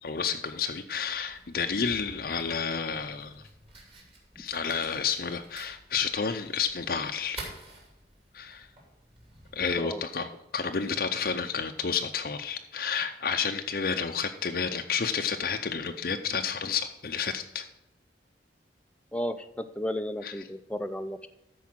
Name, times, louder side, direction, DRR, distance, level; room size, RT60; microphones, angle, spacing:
voice 1, 0.0-3.4 4.4-7.4 8.3-8.7 9.5-17.7 20.2-20.3, left 6 dB, 55° left, 5 dB, 0.6 m, -30 dB
Fire, 1.0-9.8, right 2 dB, 30° right, 2.6 m, -49 dB
voice 2, 19.1-21.3, left 1 dB, 5° left, 7 dB, 0.4 m, -33 dB
13.0 x 4.7 x 6.1 m, 0.90 s
head